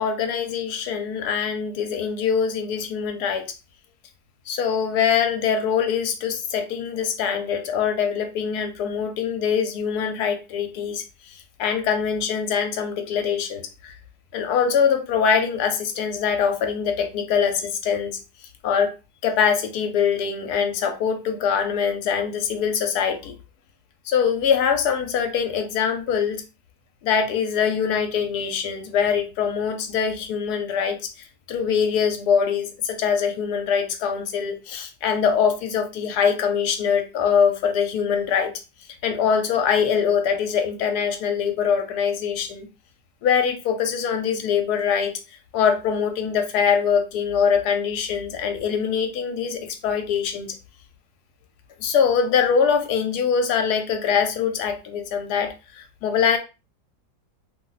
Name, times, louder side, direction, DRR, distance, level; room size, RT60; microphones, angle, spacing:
voice 1, 0.0-3.4 4.5-14.0 14.3-18.2 18.6-18.9 19.2-23.3 24.0-26.4 27.0-38.5 39.0-42.7 43.2-45.1 45.5-50.6 51.8-56.4, left 7 dB, 70° left, 6 dB, 1.0 m, -23 dB
2.8 x 2.0 x 3.8 m, 0.29 s
omnidirectional pair, 1.9 m